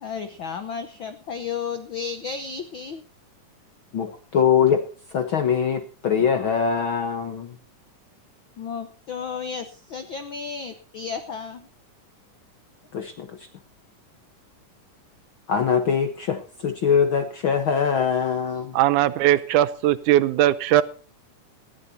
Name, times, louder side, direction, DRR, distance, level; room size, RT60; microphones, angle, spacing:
voice 1, 0.0-3.0 8.6-11.7, left 6 dB, 85° left, 9 dB, 1.0 m, -33 dB
voice 2, 3.9-4.8 5.1-7.5 12.9-13.4 15.5-18.8, left 7 dB, 65° left, 7 dB, 1.3 m, -22 dB
voice 3, 18.8-20.8, right 13 dB, 75° right, 16 dB, 2.1 m, -19 dB
19.5 x 14.0 x 2.8 m, 0.39 s
omnidirectional pair, 3.7 m